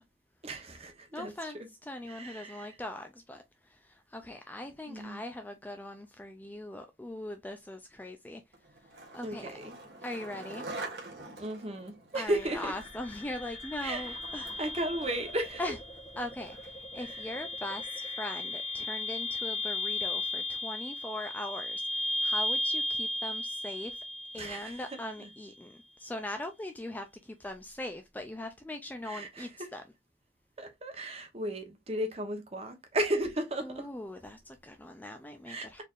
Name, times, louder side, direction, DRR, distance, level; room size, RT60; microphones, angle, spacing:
voice 1, 0.4-1.5 2.1-2.8 4.9-5.2 9.2-9.8 11.4-12.7 13.8-14.1 14.6-15.6 17.0-17.3 24.4-24.8 29.0-29.7 30.6-33.9 35.5-35.8, right 1 dB, 35° right, 1.0 m, -35 dB
voice 2, 1.1-8.4 9.1-9.5 10.0-10.7 12.1-14.6 15.6-15.8 16.2-24.0 24.3-29.8 33.6-35.8, left 1 dB, 10° left, 0.3 m, -41 dB
Skateboard, 8.5-16.9, right 2 dB, 60° right, 1.4 m, -46 dB
sound 1, 12.3-25.3, left 1 dB, 25° left, 1.2 m, -36 dB
4.3 x 3.4 x 2.4 m
head